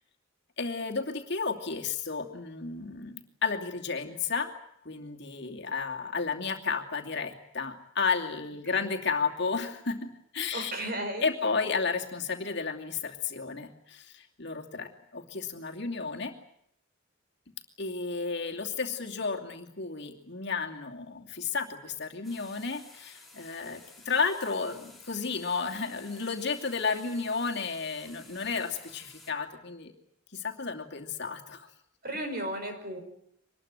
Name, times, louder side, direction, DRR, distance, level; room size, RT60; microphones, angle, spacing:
voice 1, 0.6-4.5 4.8-10.7 11.2-16.3 17.8-29.9 30.3-31.7, left 5 dB, 55° left, 2 dB, 2.6 m, -32 dB
voice 2, 10.5-11.3 32.0-33.0, right 1 dB, 45° right, 6 dB, 5.3 m, -35 dB
sound 1, 22.2-29.3, left 2 dB, ahead, 4.4 m, -53 dB
24.5 x 20.5 x 9.0 m, 0.75 s
head